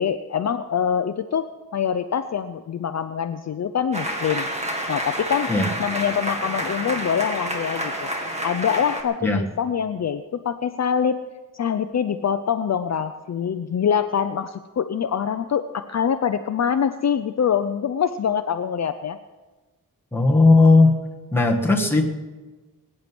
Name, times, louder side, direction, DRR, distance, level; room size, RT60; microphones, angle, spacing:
voice 1, 0.0-4.5 4.9-5.5 5.8-8.1 8.4-11.2 11.5-19.2, left 8 dB, 50° left, 9 dB, 0.6 m, -24 dB
sound 1, 3.9-9.0, equal, 20° right, 2.0 m, -29 dB
voice 2, 20.1-21.0 21.3-22.1, left 3 dB, 5° left, 0 dB, 1.7 m, -16 dB
21.5 x 9.8 x 6.1 m, 1.2 s
wide cardioid pair, 170°, 35 cm